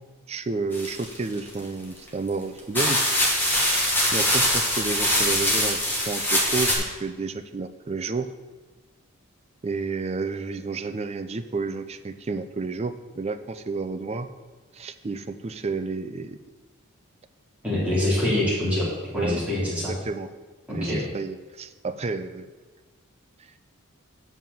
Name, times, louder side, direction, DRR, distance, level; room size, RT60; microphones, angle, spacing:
voice 1, 0.3-3.0 3.7-8.3 9.6-14.3 14.7-16.4 18.3-18.5 19.1-20.3 20.7-22.5, right 4 dB, 30° right, 10 dB, 0.4 m, -31 dB
sound 1, 0.7-1.6 2.3-2.4 2.7-6.7, equal, 10° left, 1.5 m, -23 dB
voice 2, 17.6-18.9 19.1-19.9 20.7-21.0, left 1 dB, 5° right, -8 dB, 3.2 m, -25 dB
7.5 x 5.7 x 7.1 m, 1.3 s
head